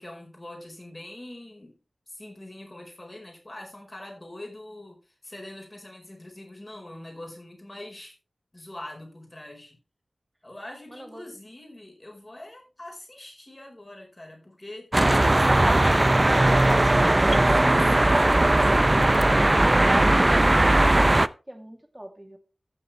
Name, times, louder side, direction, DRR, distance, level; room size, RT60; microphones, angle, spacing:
voice 1, 0.0-1.8 2.1-8.1 8.5-9.8 10.4-16.6 17.1-18.6, left 1 dB, 35° left, 4.5 m, -43 dB
voice 2, 10.9-11.3 19.2-22.4, equal, 15° right, 2.1 m, -40 dB
sound 1, 14.9-21.3, right 1 dB, 30° right, 0.5 m, -19 dB
14.5 x 6.8 x 3.2 m
wide cardioid pair, 55°, 0 cm